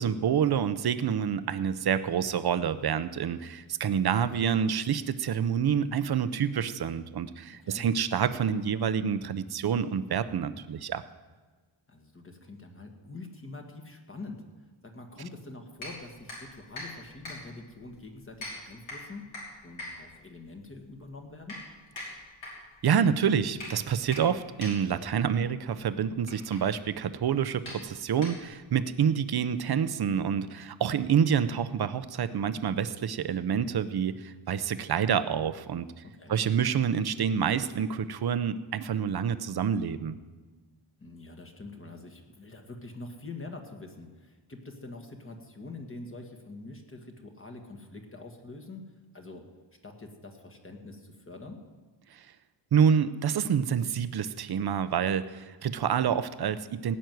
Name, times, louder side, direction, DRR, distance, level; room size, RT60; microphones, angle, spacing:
voice 1, 0.0-11.0 22.8-35.9 36.3-40.2 52.7-57.0, right 7 dB, 55° right, 13 dB, 0.7 m, -27 dB
voice 2, 11.9-14.4 14.8-19.3 19.6-21.6 25.4-25.5 36.1-36.4 41.0-49.4 49.8-51.6, left 2 dB, 30° left, 4 dB, 1.7 m, -45 dB
sound 1, 15.8-28.8, left 1 dB, 85° left, 5.9 m, -45 dB
17.5 x 6.3 x 9.3 m, 1.3 s
wide cardioid pair, 130°, 46 cm